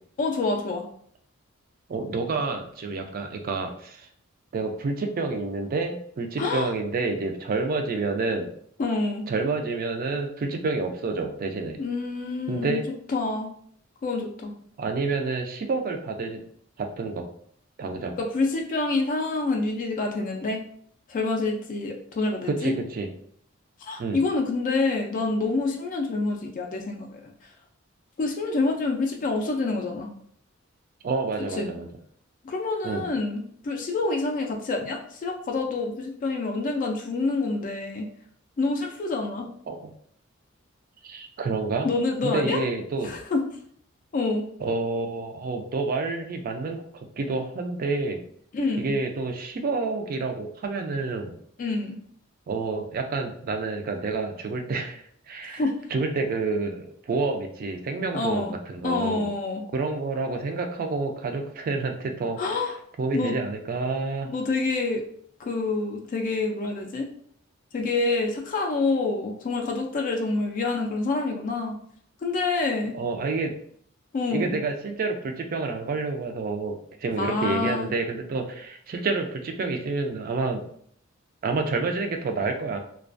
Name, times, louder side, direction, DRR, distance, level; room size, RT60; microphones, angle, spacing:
voice 1, 0.2-0.8 6.4-6.7 8.8-9.3 11.8-12.8 13.1-13.5 14.0-14.5 18.2-20.6 21.1-22.7 23.8-27.5 28.2-30.1 31.6-31.7 32.4-38.1 38.6-39.5 41.8-42.6 43.0-43.4 44.1-44.4 48.5-48.9 51.6-52.0 55.5-55.7 58.1-58.5 58.8-59.6 62.4-62.8 63.1-63.4 64.3-65.0 65.4-67.1 67.7-71.7 72.2-72.9 74.1-74.6 77.2-77.9, left 3 dB, 40° left, 2 dB, 0.3 m, -27 dB
voice 2, 1.9-4.1 4.5-8.5 9.3-11.8 12.5-12.8 14.8-16.4 16.8-17.2 17.8-18.2 22.5-23.1 24.0-24.2 31.0-31.9 32.8-33.0 39.7-39.8 41.0-41.9 42.2-43.1 44.6-46.8 47.2-48.2 48.8-51.4 52.5-55.6 55.9-59.3 59.7-62.4 63.0-64.3 72.9-73.5 74.3-80.6 81.4-82.8, right 3 dB, 45° right, 5 dB, 0.3 m, -28 dB
2.3 x 2.2 x 2.4 m, 0.62 s
head